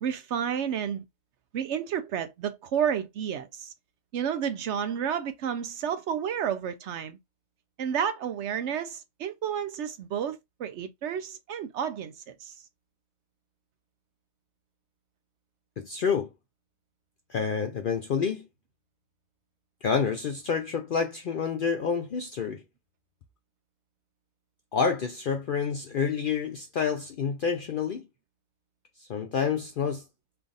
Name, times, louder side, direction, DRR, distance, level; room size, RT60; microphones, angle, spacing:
voice 1, 0.0-1.0 1.5-3.7 4.1-7.2 7.8-12.5, right 8 dB, 65° right, 0.8 m, -31 dB
voice 2, 15.8-16.3 17.3-18.4 19.8-22.6 24.7-28.0 29.0-30.0, left 6 dB, 65° left, 0.5 m, -28 dB
3.4 x 2.4 x 3.9 m
omnidirectional pair, 1.4 m